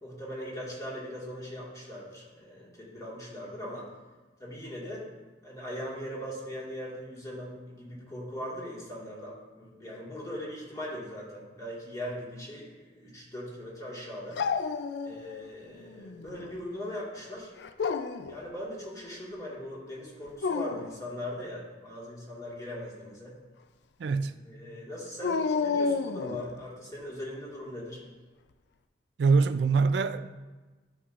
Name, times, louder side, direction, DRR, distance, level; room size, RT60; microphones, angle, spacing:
voice 1, 0.0-3.9 4.4-5.1 5.4-14.4 15.0-17.5 18.3-23.4 24.1-24.2 24.4-28.0, equal, 20° left, 1.6 m, -40 dB
Dog, 14.4-15.5 15.9-16.6 17.6-18.4 20.3-21.0 25.2-26.5, left 5 dB, 70° left, 0.4 m, -30 dB
voice 2, 24.0-24.4 29.2-30.3, right 4 dB, 70° right, 0.3 m, -24 dB
11.5 x 5.4 x 2.4 m
head